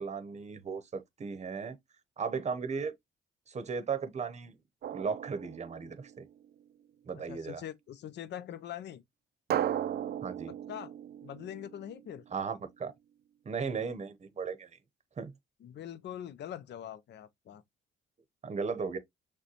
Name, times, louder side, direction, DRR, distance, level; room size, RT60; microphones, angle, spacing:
voice 1, 0.0-1.8 2.2-2.9 3.5-4.5 4.9-6.2 7.1-7.6 10.2-10.5 12.3-12.9 13.5-14.7 15.2-15.3 18.4-19.0, right 5 dB, 35° right, 0.8 m, -36 dB
Drum, 4.8-6.4 9.5-12.2, right 10 dB, 55° right, 0.4 m, -36 dB
voice 2, 7.3-9.0 10.7-10.9 11.2-12.2 15.6-17.6, left 10 dB, 60° left, 0.5 m, -43 dB
6.4 x 2.2 x 2.9 m
cardioid pair, 90°, 20 cm